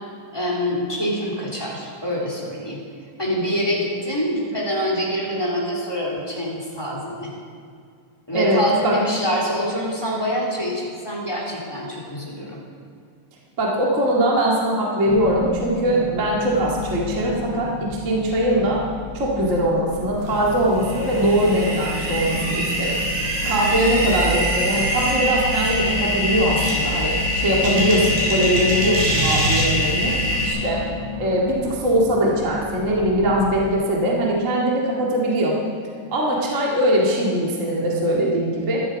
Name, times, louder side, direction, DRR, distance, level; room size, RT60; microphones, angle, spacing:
voice 1, 0.3-2.8 3.2-7.3 8.3-12.6, equal, 10° left, -4 dB, 2.4 m, -25 dB
voice 2, 8.3-9.0 13.6-18.8 19.1-23.0 23.4-30.1 30.4-30.8 31.2-35.6 36.1-38.8, right 1 dB, 30° right, -3 dB, 1.9 m, -21 dB
sound 1, 15.1-33.7, left 3 dB, 80° left, 2.6 m, -33 dB
sound 2, 20.3-30.5, equal, 80° right, 5.2 m, -23 dB
14.0 x 12.5 x 5.1 m, 2.3 s
omnidirectional pair, 3.8 m